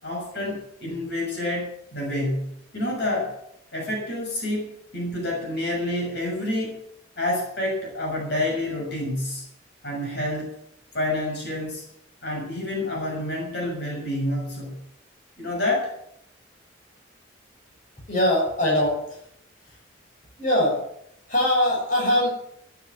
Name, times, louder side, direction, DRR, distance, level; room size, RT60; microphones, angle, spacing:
voice 1, 0.0-3.4 3.7-6.8 7.2-9.4 9.8-10.5 10.9-11.8 12.2-14.8 15.4-15.9, left 1 dB, 60° left, -1 dB, 6.8 m, -28 dB
voice 2, 18.1-19.2 20.4-20.8 21.3-22.3, left 1 dB, 40° left, -2 dB, 7.0 m, -22 dB
14.0 x 12.5 x 7.5 m, 0.73 s
head